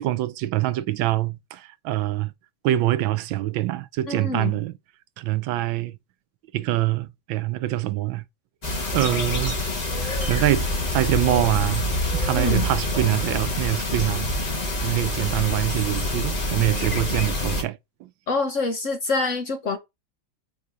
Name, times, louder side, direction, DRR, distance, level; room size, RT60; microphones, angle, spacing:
voice 1, 0.0-2.3 2.6-4.7 5.2-6.0 6.5-8.2 8.9-9.6 10.0-14.3 14.8-18.1, right 15 dB, 85° right, 1.4 m, -25 dB
voice 2, 4.1-4.5 12.4-12.7 18.3-19.8, left 3 dB, 55° left, 0.9 m, -25 dB
sound 1, 8.6-17.6, left 1 dB, 25° left, 1.2 m, -26 dB
8.4 x 2.8 x 5.0 m
omnidirectional pair, 2.1 m